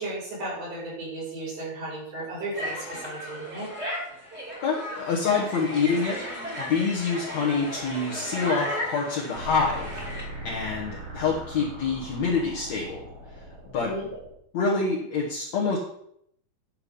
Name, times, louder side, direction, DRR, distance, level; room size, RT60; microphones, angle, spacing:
voice 1, 0.0-3.7 13.8-14.1, right 2 dB, 75° right, -8 dB, 6.5 m, -35 dB
sound 1, 2.5-10.2, equal, 20° right, 2.7 m, -35 dB
voice 2, 4.6-6.2 6.6-9.9 10.4-13.1 13.7-13.9 14.5-15.8, left 4 dB, 55° left, -4 dB, 2.4 m, -26 dB
sound 2, 9.3-14.3, right 1 dB, 50° right, 4.6 m, -39 dB
10.5 x 6.8 x 5.4 m, 0.70 s
omnidirectional pair, 4.2 m